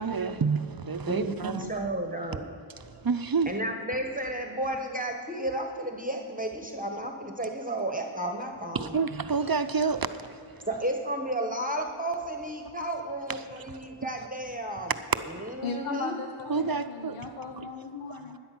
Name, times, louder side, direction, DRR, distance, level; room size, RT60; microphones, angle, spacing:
voice 1, 0.0-1.9 2.8-3.6 8.7-10.7 13.2-14.1 14.9-15.0 16.5-17.7, right 5 dB, 45° right, 0.6 m, -30 dB
voice 2, 1.1-2.4 3.5-8.9 10.7-14.9 15.5-16.1, right 1 dB, 15° right, 1.1 m, -32 dB
voice 3, 15.6-18.4, left 4 dB, 90° left, 0.8 m, -37 dB
13.0 x 10.0 x 5.9 m
wide cardioid pair, 40°, 50 cm